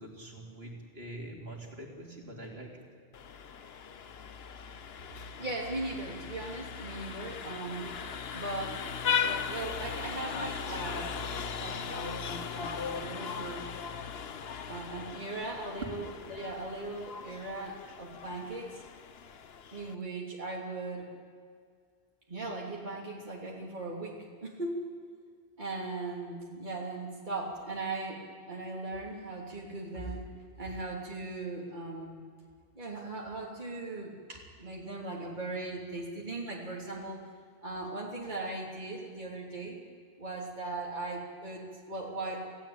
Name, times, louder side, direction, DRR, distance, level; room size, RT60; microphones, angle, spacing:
voice 1, 0.0-2.8, right 1 dB, 65° right, -1 dB, 3.8 m, -44 dB
Vehicle horn car horn honking, 3.1-20.0, left 6 dB, 65° left, 1.1 m, -38 dB
voice 2, 5.4-7.9 8.3-8.8 9.2-11.2 11.6-13.7 14.7-18.8 19.7-21.1 22.3-24.9 25.6-30.3 30.6-32.2 32.7-37.2 37.6-39.8 40.2-42.4, right 2 dB, 45° right, -3 dB, 3.4 m, -38 dB
28.0 x 16.5 x 8.8 m, 2.1 s
omnidirectional pair, 1.1 m